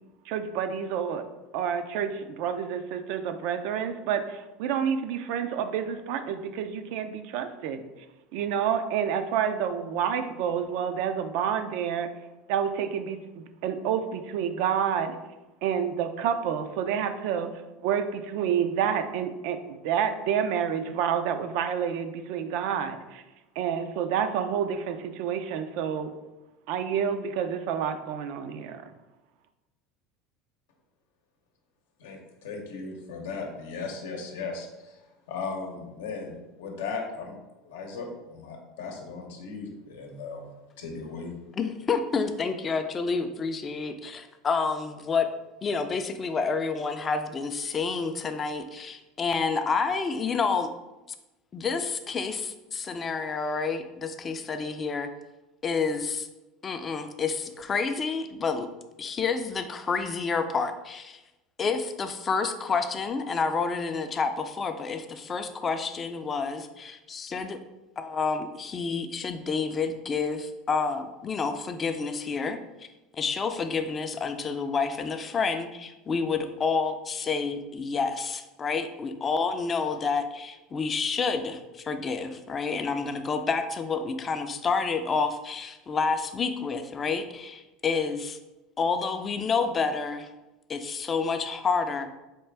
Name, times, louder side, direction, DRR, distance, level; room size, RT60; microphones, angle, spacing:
voice 1, 0.3-1.2 1.5-7.9 8.3-12.1 12.5-15.2 15.6-17.5 17.8-23.2 23.6-26.1 26.7-28.9, right 8 dB, 70° right, 9 dB, 0.3 m, -29 dB
voice 2, 32.0-35.0 35.3-37.4 37.6-40.5 40.8-41.3, left 4 dB, 90° left, 2 dB, 0.7 m, -37 dB
voice 3, 41.6-45.3 45.6-50.7 51.5-55.1 55.6-56.3 56.6-58.7 59.0-61.2 61.6-67.6 68.0-72.6 73.1-88.4 88.8-90.3 90.7-92.2, left 5 dB, 30° left, 8 dB, 0.3 m, -29 dB
4.3 x 2.4 x 3.3 m, 1.0 s
supercardioid pair, 110°, 0 cm